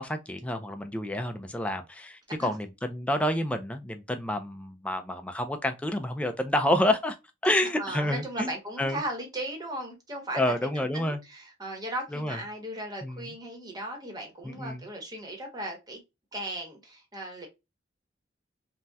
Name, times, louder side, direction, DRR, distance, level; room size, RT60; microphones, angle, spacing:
voice 1, 0.0-7.2 7.4-8.5 8.8-9.0 10.3-11.2 12.1-12.4 13.0-13.2 14.4-14.8, left 1 dB, 5° left, 0.3 m, -29 dB
voice 2, 7.6-10.6 10.9-16.0 16.3-17.5, right 1 dB, 20° right, 1.0 m, -37 dB
3.4 x 2.1 x 2.6 m
head